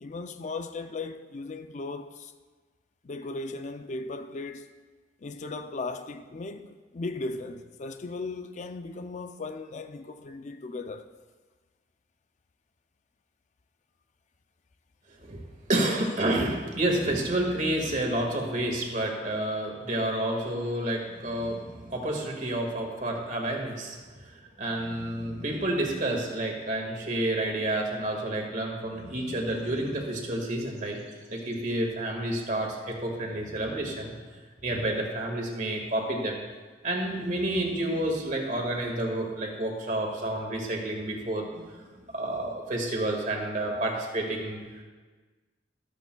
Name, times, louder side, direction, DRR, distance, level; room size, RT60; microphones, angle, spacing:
voice 1, 0.0-2.3 3.0-4.7 5.2-11.1 16.1-16.2 42.3-42.4, left 3 dB, 40° left, 0.4 m, -37 dB
voice 2, 15.7-34.1 34.6-36.4 36.8-44.8, right 1 dB, 45° right, 1.8 m, -30 dB
14.0 x 13.0 x 2.3 m
head